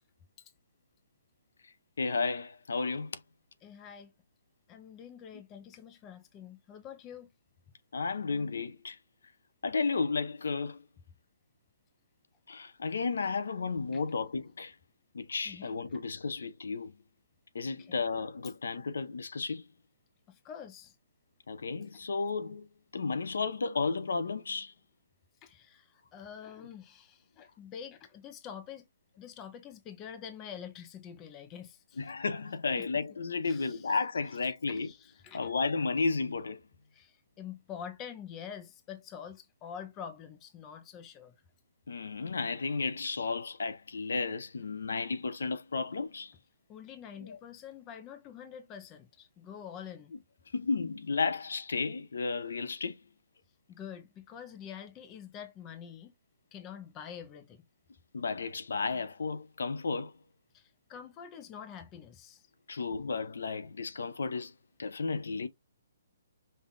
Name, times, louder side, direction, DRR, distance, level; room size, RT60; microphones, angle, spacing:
voice 1, 2.0-3.2 7.9-9.0 9.6-10.8 12.5-14.7 15.1-16.9 17.5-19.6 21.5-22.7 22.9-24.7 32.0-34.9 35.3-36.6 41.9-46.3 47.2-47.4 50.1-50.2 50.5-53.0 58.1-60.1 62.7-64.5 64.8-65.5, left 4 dB, 75° left, 0.6 m, -33 dB
voice 2, 3.6-4.1 4.7-7.3 13.9-14.0 15.5-15.8 17.8-18.0 20.3-20.9 25.4-28.8 29.2-32.0 32.8-32.9 33.4-33.9 34.7-35.5 36.9-41.3 46.7-50.1 53.7-56.1 56.5-57.6 60.5-62.4, left 8 dB, 15° left, 0.5 m, -46 dB
5.5 x 2.4 x 3.8 m
hypercardioid pair, 175°, 0 cm